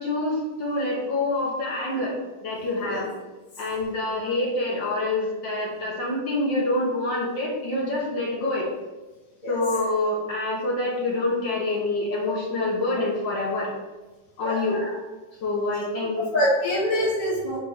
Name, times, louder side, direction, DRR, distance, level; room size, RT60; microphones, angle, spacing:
voice 1, 0.0-2.1 2.4-3.1 3.6-8.6 9.5-13.7 14.4-15.0 15.4-16.3, left 2 dB, 50° left, -4 dB, 1.4 m, -26 dB
voice 2, 16.3-17.6, equal, 20° left, -10 dB, 1.6 m, -25 dB
5.3 x 4.4 x 5.1 m, 1.1 s
omnidirectional pair, 3.6 m